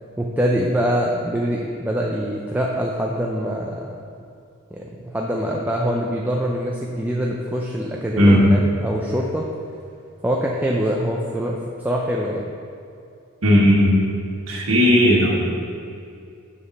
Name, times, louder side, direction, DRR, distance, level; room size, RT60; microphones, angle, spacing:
voice 1, 0.2-4.0 4.7-9.5 10.2-12.5, equal, 10° right, -2 dB, 0.5 m, -24 dB
voice 2, 13.4-14.0 14.5-15.3, equal, 75° right, -5 dB, 1.7 m, -15 dB
7.0 x 7.0 x 5.5 m, 2.5 s
head